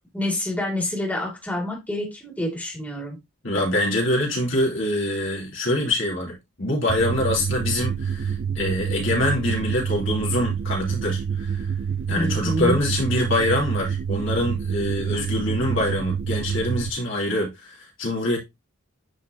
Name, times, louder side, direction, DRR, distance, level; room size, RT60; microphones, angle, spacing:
voice 1, 0.1-3.2 12.1-12.8, left 1 dB, 5° left, 2.4 m, -27 dB
voice 2, 3.4-11.7 12.1-18.4, left 1 dB, 65° left, 3.1 m, -25 dB
sound 1, 6.9-16.9, right 7 dB, 45° right, 0.3 m, -27 dB
9.8 x 4.3 x 2.8 m
head